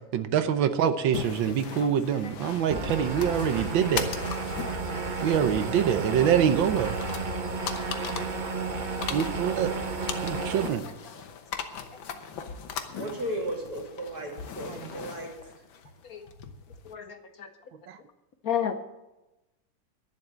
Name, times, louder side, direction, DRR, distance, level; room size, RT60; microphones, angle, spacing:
voice 1, 0.1-4.1 5.2-7.0 9.1-9.7 10.2-10.8 14.7-14.8 17.9-18.0, right 9 dB, 90° right, 10 dB, 1.6 m, -25 dB
sound 1, 1.1-16.9, left 7 dB, 85° left, 1.8 m, -39 dB
sound 2, 2.7-10.7, right 3 dB, 35° right, 0.9 m, -32 dB
voice 2, 10.8-11.2 12.8-15.3, right 1 dB, 55° right, 1 dB, 3.2 m, -36 dB
voice 3, 16.9-17.5 18.4-18.7, left 8 dB, 60° left, 8 dB, 1.1 m, -32 dB
11.5 x 11.0 x 7.4 m, 1.0 s
omnidirectional pair, 2.0 m